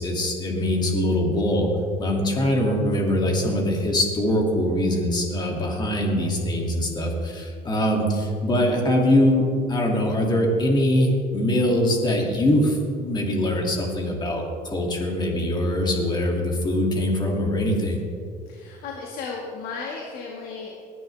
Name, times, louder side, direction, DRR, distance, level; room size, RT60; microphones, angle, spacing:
voice 1, 0.0-1.7 2.0-18.0, left 1 dB, 25° left, 0 dB, 2.7 m, -23 dB
voice 2, 18.5-20.7, left 4 dB, 65° left, -1 dB, 1.9 m, -34 dB
19.5 x 11.0 x 3.5 m, 2.3 s
cardioid pair, 120°, 16 cm